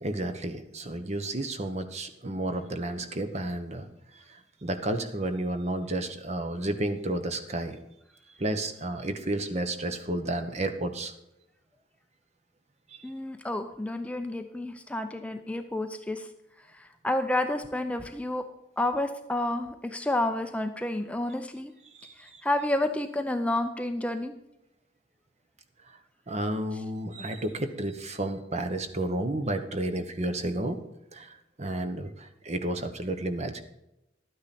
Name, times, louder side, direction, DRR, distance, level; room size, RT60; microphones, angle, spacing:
voice 1, 0.0-3.9 4.1-7.8 8.4-11.1 12.9-13.0 21.9-22.4 25.8-26.0 26.3-30.8 31.1-33.6, right 1 dB, 35° right, 8 dB, 1.1 m, -32 dB
voice 2, 13.0-16.3 16.7-18.4 18.8-21.7 22.2-24.3, left 1 dB, 5° left, 6 dB, 0.6 m, -30 dB
12.0 x 9.4 x 4.2 m, 0.87 s
head